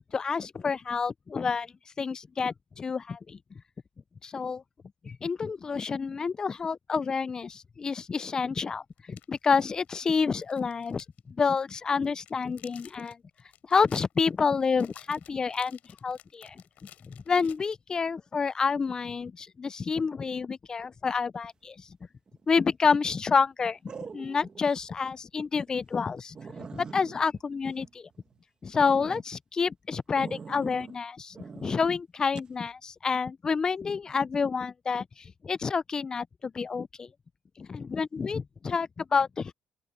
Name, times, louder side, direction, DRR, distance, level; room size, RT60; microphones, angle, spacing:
voice 1, 0.1-3.4 4.2-4.6 5.0-13.2 13.7-16.6 17.0-21.9 22.5-28.1 28.6-37.1 37.6-39.5, left 5 dB, 25° left, 0.4 m, -29 dB
sound 1, 8.1-8.2 9.0-11.2 11.5-11.6 12.0-18.1, left 12 dB, 70° left, 6.7 m, -54 dB
sound 2, 22.3-22.7 23.9-24.6 25.1-25.2 25.7-25.8 26.0-26.1 26.4-28.4 28.8-29.2 30.2-31.0 31.4-31.8 32.4-32.5, right 5 dB, 30° right, 1.4 m, -44 dB
open air
cardioid pair, 135°, 3 cm